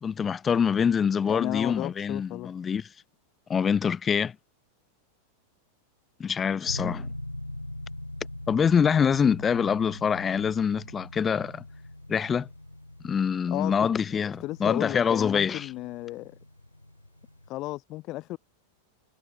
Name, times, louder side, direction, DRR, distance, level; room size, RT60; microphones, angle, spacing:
voice 1, 0.0-2.8 3.5-4.3 6.2-7.1 8.5-11.6 12.1-12.5 13.0-15.7, left 7 dB, 20° left, 0.8 m, -25 dB
voice 2, 1.2-2.5 13.5-13.9 14.4-16.4 17.5-18.4, left 18 dB, 40° left, 0.3 m, -34 dB
sound 1, 6.7-17.5, left 1 dB, 85° left, 4.9 m, -42 dB
figure-of-eight pair, 90°, 0 cm